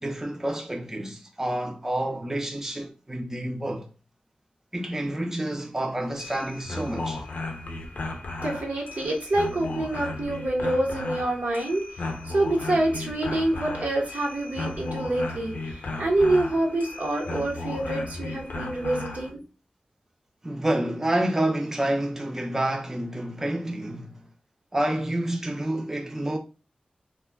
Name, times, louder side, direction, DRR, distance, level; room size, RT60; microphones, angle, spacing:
voice 1, 0.0-3.9 4.7-7.2 20.4-24.2 24.7-26.4, right 1 dB, 15° right, 0.4 m, -28 dB
sound 1, 6.0-19.3, left 2 dB, 80° left, 0.4 m, -35 dB
voice 2, 8.4-11.8 12.2-19.4, right 1 dB, 80° right, 0.9 m, -26 dB
2.2 x 2.2 x 3.3 m
wide cardioid pair, 75°, 3 cm